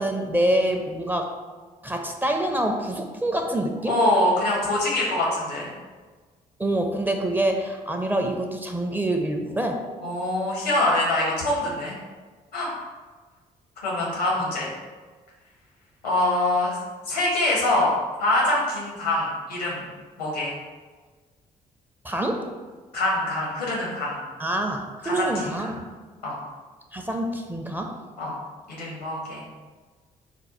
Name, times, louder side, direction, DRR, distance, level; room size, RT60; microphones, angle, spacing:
voice 1, 0.0-1.3 1.8-4.0 6.6-9.8 22.0-22.5 24.4-25.8 26.9-28.0, right 1 dB, 10° right, 3 dB, 0.5 m, -26 dB
voice 2, 3.8-5.7 10.0-11.9 12.5-12.7 13.8-14.7 16.0-16.8 17.1-17.9 18.2-19.9 20.2-20.5 22.9-24.2 25.0-25.7 26.2-26.4 28.2-28.3 28.7-29.4, left 1 dB, 80° left, -4 dB, 1.0 m, -24 dB
4.4 x 2.2 x 4.1 m, 1.4 s
figure-of-eight pair, 40°, 20 cm